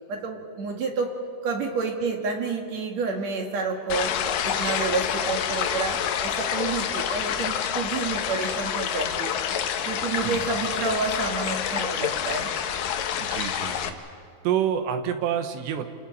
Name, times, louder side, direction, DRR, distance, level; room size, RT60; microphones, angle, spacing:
voice 1, 0.1-1.2 1.4-9.3 9.9-12.5, right 4 dB, 55° right, 2 dB, 2.3 m, -29 dB
sound 1, 3.9-13.9, left 9 dB, 70° left, 2.2 m, -28 dB
voice 2, 13.2-14.0 14.5-15.9, right 9 dB, 85° right, 7 dB, 3.5 m, -28 dB
29.5 x 28.0 x 4.4 m, 2.3 s
omnidirectional pair, 4.9 m